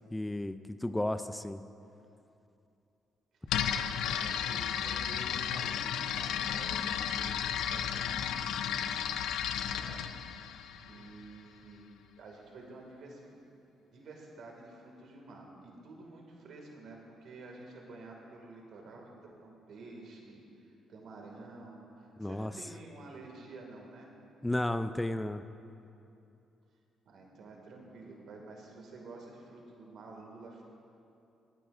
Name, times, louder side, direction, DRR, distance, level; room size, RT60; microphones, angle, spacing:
voice 1, 0.1-1.6 22.2-22.5 24.4-25.4, left 1 dB, 10° left, 11 dB, 0.4 m, -33 dB
voice 2, 3.3-3.7 4.0-8.6 9.1-9.2 9.6-10.2 10.8-11.9 12.2-13.4 13.9-19.1 19.4-20.5 20.9-24.1 27.1-30.6, right 2 dB, 70° right, 0 dB, 2.1 m, -50 dB
sound 1, 3.5-11.3, left 9 dB, 85° left, 0.4 m, -33 dB
23.5 x 9.2 x 2.6 m, 2.7 s
cardioid pair, 90°, 0 cm